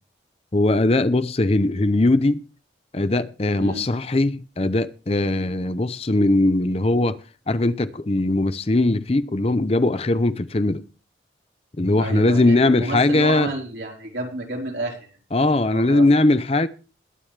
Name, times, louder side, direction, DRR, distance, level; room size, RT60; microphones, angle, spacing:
voice 1, 0.5-2.4 2.9-7.2 7.5-10.8 11.8-13.5 15.3-16.7, left 2 dB, 35° left, 0.6 m, -20 dB
voice 2, 12.0-16.0, right 1 dB, 75° right, 4.2 m, -31 dB
21.5 x 8.9 x 3.3 m
head